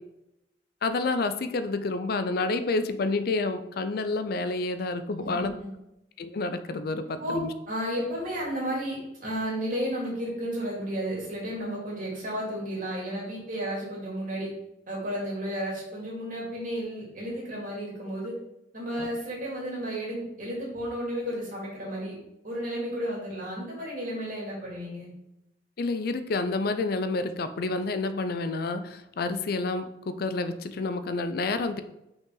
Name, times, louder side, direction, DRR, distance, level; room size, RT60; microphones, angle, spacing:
voice 1, 0.8-5.5 6.2-7.5 19.0-19.1 25.8-31.8, left 3 dB, 55° left, 11 dB, 0.4 m, -29 dB
voice 2, 5.2-5.7 7.0-7.4 7.7-14.5 14.9-18.3 18.7-22.1 22.4-25.1, equal, 50° right, -4 dB, 2.6 m, -33 dB
5.8 x 5.4 x 3.8 m, 0.89 s
head